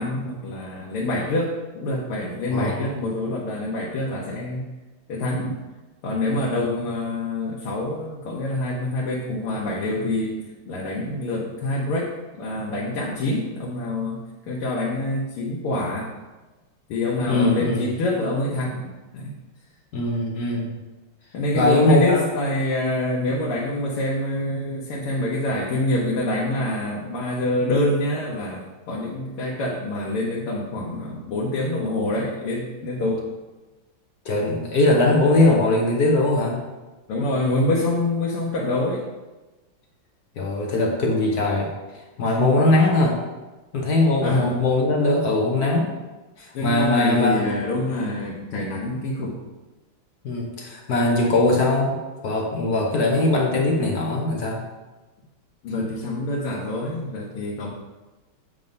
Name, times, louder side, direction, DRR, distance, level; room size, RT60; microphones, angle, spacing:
voice 1, 0.0-4.7 5.1-5.6 6.0-14.2 14.5-16.1 16.9-18.9 19.1-19.3 21.3-33.2 37.1-39.1 42.2-42.5 44.2-44.6 46.5-49.5 55.6-57.7, left 1 dB, 80° left, -4 dB, 1.9 m, -26 dB
voice 2, 17.3-17.9 19.9-20.8 21.5-22.2 34.2-36.6 40.4-41.7 42.2-43.2 43.7-45.9 46.4-47.4 50.2-52.0 52.2-54.6, left 2 dB, 55° left, 0 dB, 1.2 m, -20 dB
7.9 x 3.7 x 5.2 m, 1.2 s
omnidirectional pair, 2.4 m